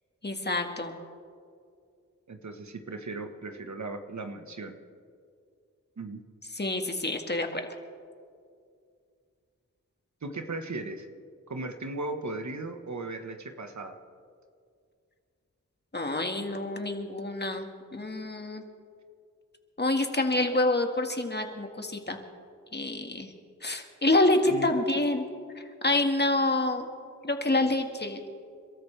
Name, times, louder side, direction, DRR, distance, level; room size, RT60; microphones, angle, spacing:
voice 1, 0.2-1.0 6.5-7.6 15.9-18.6 19.8-22.2 22.7-23.3 23.6-25.2 25.8-26.9 27.2-28.2, left 2 dB, 35° left, 4 dB, 1.8 m, -27 dB
voice 2, 2.3-4.8 6.0-6.2 10.2-11.1 11.5-14.0 24.4-24.7, right 2 dB, 65° right, 6 dB, 1.3 m, -37 dB
29.5 x 13.5 x 3.4 m, 2.3 s
cardioid pair, 45°, 31 cm